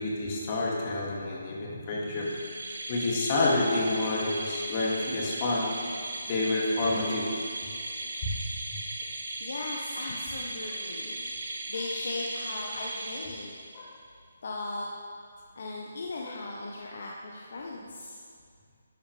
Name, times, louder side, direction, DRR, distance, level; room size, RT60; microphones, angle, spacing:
voice 1, 0.0-2.3 2.9-5.7 6.2-7.3 8.2-8.3 10.6-10.7 13.7-13.9 16.2-16.4, left 2 dB, 35° left, -4 dB, 2.6 m, -29 dB
sound 1, 2.1-13.9, right 2 dB, 70° right, 1.8 m, -37 dB
voice 2, 9.4-13.6 14.4-14.8 15.6-18.2, left 2 dB, 55° left, -2 dB, 1.2 m, -38 dB
12.5 x 12.0 x 3.5 m, 2.2 s
figure-of-eight pair, 145°, 0 cm